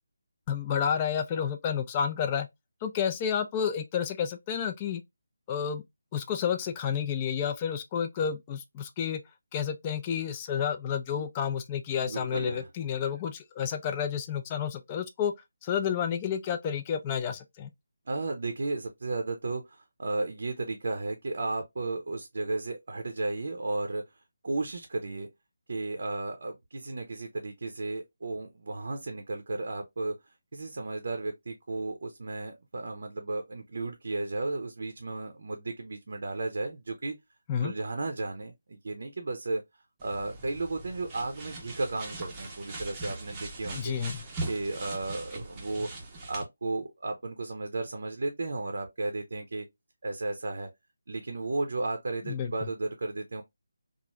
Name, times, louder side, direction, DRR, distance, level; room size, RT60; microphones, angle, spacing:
voice 1, 0.5-2.5 2.8-5.0 5.5-5.8 6.1-9.2 9.5-15.3 15.6-17.7 37.5-37.7 43.7-44.2 52.3-52.5, left 8 dB, 15° left, 0.3 m, -30 dB
voice 2, 12.0-12.7 18.1-24.0 24.4-25.3 25.7-30.1 30.5-37.1 37.6-39.6 40.0-43.9 44.5-45.9 46.3-49.6 50.0-50.7 51.1-53.4, right 2 dB, 55° right, 0.6 m, -34 dB
sound 1, 40.0-46.4, right 2 dB, 10° right, 0.6 m, -40 dB
3.0 x 2.4 x 2.3 m
figure-of-eight pair, 175°, 0 cm